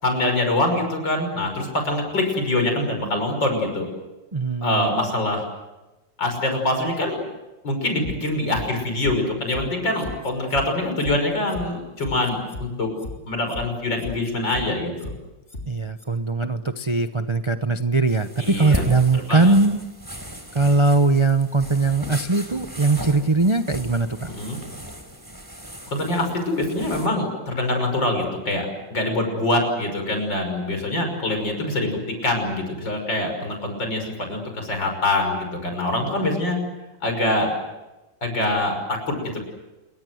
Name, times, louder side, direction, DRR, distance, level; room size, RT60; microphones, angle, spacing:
voice 1, 0.0-3.9 4.6-5.4 6.2-7.2 7.6-12.9 13.3-15.1 18.4-18.8 19.3-19.5 24.3-24.6 25.9-36.6 37.0-37.5 38.2-39.4, left 1 dB, 75° left, 4 dB, 6.6 m, -24 dB
voice 2, 4.3-4.9 15.7-19.8 20.5-24.3, right 3 dB, 25° right, 8 dB, 0.6 m, -20 dB
sound 1, 8.0-8.6 9.0-9.1 9.5-9.6 10.0-10.6 11.0-11.1 11.5-11.6 12.0-12.6 13.0-13.1 13.5-13.6 14.0-14.6 15.0-15.1 15.5-15.6 16.0-16.1, left 2 dB, 30° left, 3.6 m, -35 dB
sound 2, 18.1-27.1, equal, 10° right, 4.1 m, -35 dB
28.0 x 23.5 x 7.9 m, 1.1 s
omnidirectional pair, 2.0 m